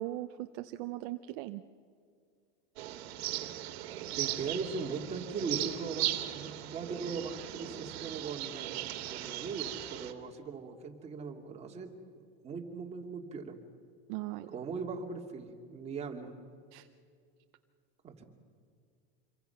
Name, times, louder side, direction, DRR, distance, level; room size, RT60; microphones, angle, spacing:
voice 1, 0.0-1.6 14.1-14.5 16.7-16.9, right 16 dB, 50° right, 8 dB, 0.8 m, -39 dB
sound 1, 2.8-10.1, right 14 dB, 75° right, 2.0 m, -38 dB
voice 2, 4.2-11.9 12.4-13.6 14.5-16.3 18.0-18.2, right 5 dB, 20° right, 2 dB, 2.4 m, -39 dB
27.0 x 23.0 x 5.8 m, 2.2 s
supercardioid pair, 150°, 32 cm